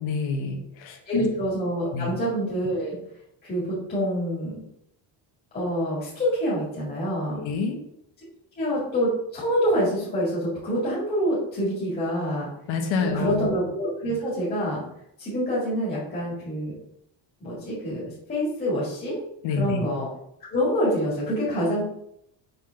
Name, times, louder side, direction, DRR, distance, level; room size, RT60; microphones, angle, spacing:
voice 1, 0.0-1.3 1.9-2.1 7.4-7.8 12.7-13.5 19.4-19.8, left 5 dB, 90° left, 3 dB, 1.3 m, -27 dB
voice 2, 1.1-3.0 3.4-4.6 5.5-7.4 8.6-12.5 13.0-14.8 15.2-16.8 17.4-18.0 18.3-19.2 19.6-20.1 20.5-21.8, equal, 20° left, -8 dB, 2.0 m, -26 dB
5.9 x 3.8 x 5.7 m, 0.77 s
cardioid pair, 175°, 45 cm